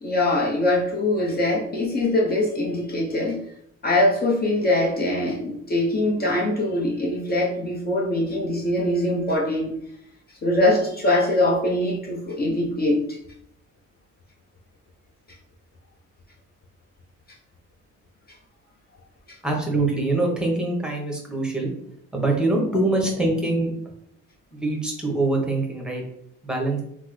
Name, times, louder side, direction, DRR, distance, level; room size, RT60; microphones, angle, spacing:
voice 1, 0.0-3.4 3.8-9.7 10.4-13.2 19.3-19.4, left 1 dB, 30° left, -3 dB, 0.7 m, -22 dB
voice 2, 19.4-21.7 22.1-23.7 24.5-26.0 26.4-26.8, right 2 dB, 5° right, 0 dB, 0.9 m, -24 dB
3.4 x 2.0 x 3.1 m, 0.74 s
cardioid pair, 90°, 30 cm